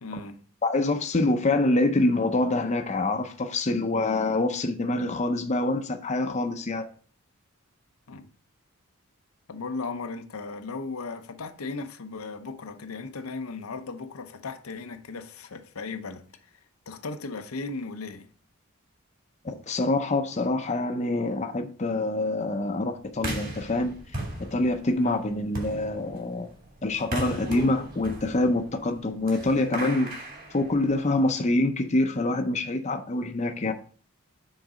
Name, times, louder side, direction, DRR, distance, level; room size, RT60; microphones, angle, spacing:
voice 1, 0.0-0.5 8.1-8.3 9.5-16.5 16.9-18.3, left 3 dB, 85° left, 0.7 m, -36 dB
voice 2, 0.6-6.8 19.4-23.9 24.5-26.5 26.8-30.1 30.5-33.7, left 2 dB, 30° left, 0.6 m, -25 dB
sound 1, 23.1-31.3, right 1 dB, 40° right, 2.2 m, -37 dB
6.4 x 3.9 x 4.9 m
head